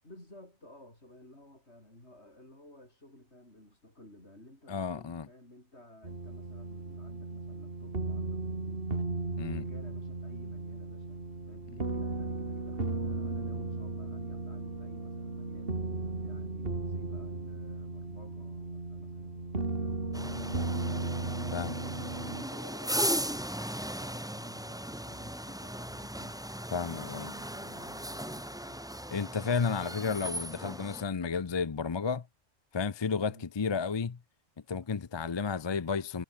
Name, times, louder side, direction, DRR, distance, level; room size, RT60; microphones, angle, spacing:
voice 1, 0.0-29.1 33.2-33.5, left 1 dB, 65° left, 8.5 m, -55 dB
voice 2, 4.7-5.3 9.4-9.6 21.5-21.8 26.7-27.3 29.1-32.3 32.7-34.2 34.7-36.2, left 5 dB, 35° left, 0.5 m, -32 dB
sound 1, 6.0-22.4, right 3 dB, 50° right, 3.1 m, -36 dB
sound 2, 20.1-31.0, equal, 5° right, 1.1 m, -37 dB
omnidirectional pair, 1.2 m